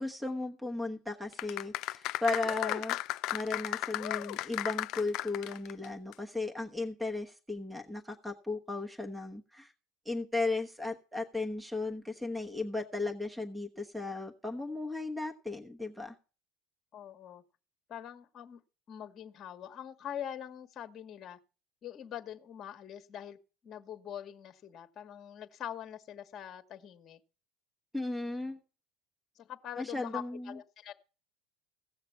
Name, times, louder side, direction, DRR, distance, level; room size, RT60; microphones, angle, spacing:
voice 1, 0.0-3.0 3.3-9.7 10.0-16.1 27.9-28.6 29.8-30.6, left 3 dB, 5° right, 5 dB, 1.2 m, -36 dB
sound 1, 1.3-5.9 6.1-6.2, left 16 dB, 65° left, 0.5 m, -35 dB
voice 2, 16.9-17.4 17.9-18.6 18.9-21.4 21.8-23.4 23.6-27.2 29.4-30.9, left 10 dB, 40° left, 8 dB, 1.2 m, -44 dB
16.5 x 6.7 x 5.7 m, 0.36 s
supercardioid pair, 105°, 0 cm